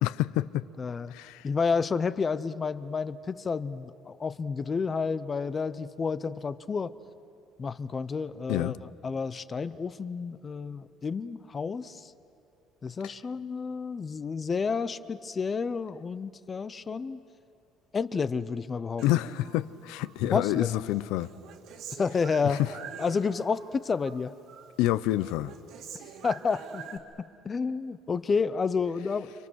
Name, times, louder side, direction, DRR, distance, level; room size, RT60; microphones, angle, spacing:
voice 1, 0.0-0.7 1.1-1.5 8.5-8.8 13.0-13.1 19.0-21.3 22.4-22.7 24.8-25.5, left 15 dB, 85° left, 17 dB, 0.6 m, -28 dB
voice 2, 0.8-1.1 1.4-6.9 7.6-12.1 12.8-17.2 17.9-19.0 20.2-20.9 21.9-22.6 23.0-24.3 26.2-29.3, left 5 dB, 20° left, 14 dB, 0.6 m, -30 dB
Human voice, 19.0-20.2 20.5-23.7 24.0-24.7 25.0-27.0, right 7 dB, 60° right, 2.5 m, -45 dB
29.5 x 27.0 x 6.4 m, 2.8 s
cardioid pair, 160°, 0 cm